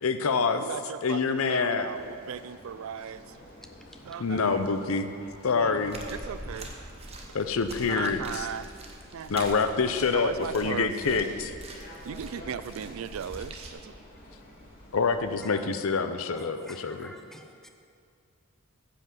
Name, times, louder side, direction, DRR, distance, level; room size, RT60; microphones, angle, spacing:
voice 1, 0.0-0.6 1.0-1.9 4.2-5.1 5.4-6.0 7.3-8.5 9.3-11.5 14.9-17.1, left 5 dB, 75° left, 9 dB, 0.6 m, -26 dB
voice 2, 0.6-3.4 4.0-4.6 5.5-6.7 7.3-7.4 7.9-8.7 9.1-9.5 10.1-11.5 12.0-13.9, right 7 dB, 70° right, 15 dB, 0.3 m, -37 dB
sound 1, 1.8-15.4, left 1 dB, 40° left, 2.7 m, -51 dB
sound 2, 5.8-13.7, right 2 dB, 30° right, 0.9 m, -44 dB
voice 3, 16.4-17.7, equal, ahead, 4 dB, 0.5 m, -49 dB
10.0 x 5.8 x 7.5 m, 2.4 s
head